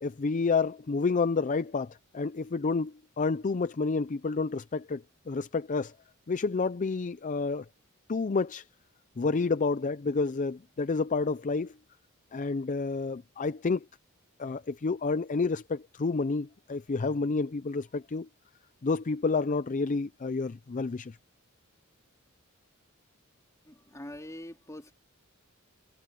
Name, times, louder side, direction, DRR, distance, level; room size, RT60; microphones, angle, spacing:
voice 1, 0.0-5.9 6.3-7.6 8.1-8.6 9.2-11.7 12.3-13.8 14.4-18.3 18.8-21.2, left 4 dB, 35° left, 0.5 m, -29 dB
voice 2, 23.7-24.9, left 1 dB, 15° left, 3.8 m, -44 dB
head